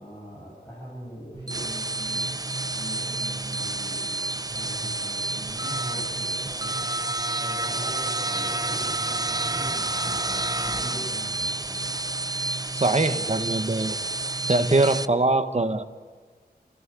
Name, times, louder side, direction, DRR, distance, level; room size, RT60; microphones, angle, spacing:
voice 1, 0.0-6.9 7.3-11.9, equal, 15° left, -4 dB, 7.7 m, -42 dB
sound 1, 1.3-15.0, right 2 dB, 20° right, 0.6 m, -29 dB
voice 2, 12.7-13.9 14.5-15.8, right 2 dB, 40° right, 9 dB, 1.4 m, -22 dB
29.5 x 16.0 x 8.7 m, 1.5 s
wide cardioid pair, 80°, 17 cm